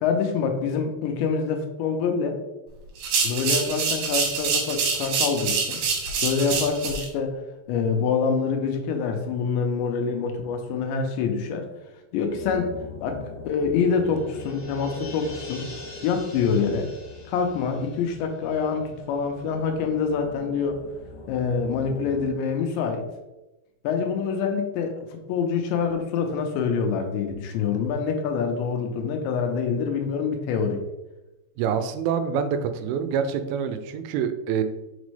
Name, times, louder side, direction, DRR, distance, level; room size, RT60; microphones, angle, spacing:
voice 1, 0.0-2.4 3.2-5.8 6.2-7.4 7.7-11.6 12.1-12.7 13.0-15.7 16.0-16.9 17.3-20.8 21.3-23.1 23.8-30.8, left 5 dB, 80° left, 4 dB, 2.8 m, -26 dB
sound 1, 3.0-7.1, right 5 dB, 70° right, 2.8 m, -26 dB
sound 2, 12.3-22.3, left 4 dB, 65° left, 2.2 m, -43 dB
sound 3, 13.0-19.4 19.7-19.8, left 1 dB, 40° right, 1.1 m, -43 dB
voice 2, 31.6-34.6, right 7 dB, 90° right, 9 dB, 3.1 m, -26 dB
6.1 x 5.1 x 3.2 m, 1.0 s
omnidirectional pair, 5.4 m